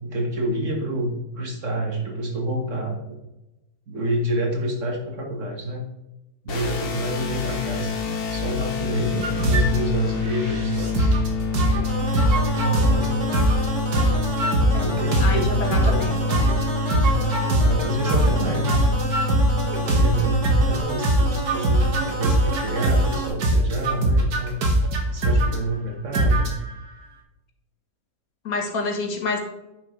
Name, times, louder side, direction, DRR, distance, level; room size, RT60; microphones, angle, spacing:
voice 1, 0.0-3.2 3.9-5.9 6.4-8.0 8.3-11.2 12.5-13.3 14.8-16.1 17.0-18.8 19.8-24.6 25.1-26.5, right 1 dB, 55° right, 2 dB, 1.9 m, -28 dB
sound 1, 6.5-20.8, left 4 dB, 45° left, 1.1 m, -27 dB
sound 2, 9.2-9.8 10.3-11.3 11.5-11.9 12.1-13.1 13.3-13.7 13.9-16.0 16.3-20.8 21.0-23.2 23.4-25.6 26.1-26.7, right 1 dB, 90° right, 1.9 m, -21 dB
sound 3, 11.8-23.3, right 2 dB, 30° right, 2.7 m, -31 dB
voice 2, 14.7-16.2 28.4-29.4, left 3 dB, 70° left, 3 dB, 1.8 m, -28 dB
9.2 x 6.4 x 3.2 m, 0.96 s
omnidirectional pair, 1.6 m